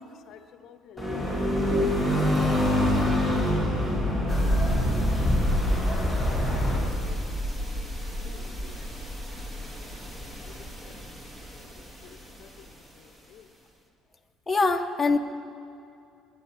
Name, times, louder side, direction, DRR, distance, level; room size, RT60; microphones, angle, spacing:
voice 1, 0.3-3.9 5.5-5.7 8.2-9.1 10.6-11.0 12.4-12.5 13.3-13.4, left 9 dB, 60° left, 8 dB, 0.6 m, -52 dB
sound 1, 1.0-6.8, left 1 dB, ahead, 4.8 m, -25 dB
sound 2, 4.3-12.7, equal, 20° right, 1.6 m, -31 dB
voice 2, 14.5-15.2, left 3 dB, 15° left, 3 dB, 0.9 m, -23 dB
29.0 x 10.0 x 4.4 m, 2.5 s
cardioid pair, 140°, 0 cm